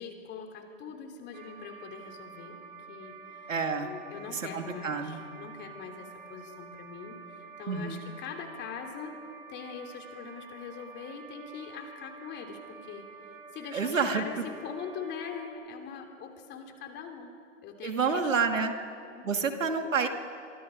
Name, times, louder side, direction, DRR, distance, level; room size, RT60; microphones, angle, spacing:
voice 1, 0.0-2.6 2.9-3.5 3.8-9.1 9.5-17.3 17.6-18.7 19.1-19.6, left 6 dB, 30° left, 4 dB, 3.1 m, -42 dB
sound 1, 1.3-15.5, right 5 dB, 25° right, 2.9 m, -49 dB
voice 2, 3.5-3.9 4.3-5.2 7.7-8.0 13.7-14.4 17.8-18.7 19.2-20.1, right 5 dB, 85° right, 5 dB, 2.5 m, -29 dB
26.0 x 24.0 x 5.3 m, 2.6 s
hypercardioid pair, 125°, 38 cm